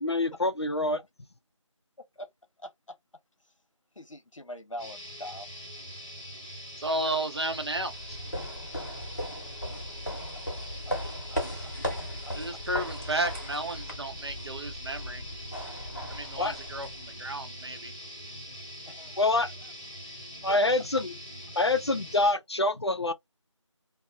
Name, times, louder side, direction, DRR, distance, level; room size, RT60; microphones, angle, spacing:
voice 1, 0.0-1.0 16.4-16.6 19.2-19.5 20.4-21.2 21.6-23.1, left 2 dB, 55° left, 0.4 m, -26 dB
voice 2, 2.6-3.0 3.4-3.5 3.9-5.5 9.7-9.8 10.9-11.0 11.3-12.3 18.9-19.5 20.5-20.6, left 1 dB, 70° left, 0.8 m, -44 dB
sound 1, 4.8-22.3, equal, 10° right, 1.0 m, -43 dB
voice 3, 6.8-8.2 12.3-15.2 16.1-17.9, right 1 dB, 55° right, 0.6 m, -33 dB
sound 2, 7.7-17.3, equal, 35° left, 0.8 m, -37 dB
2.4 x 2.0 x 2.5 m
figure-of-eight pair, 170°, 17 cm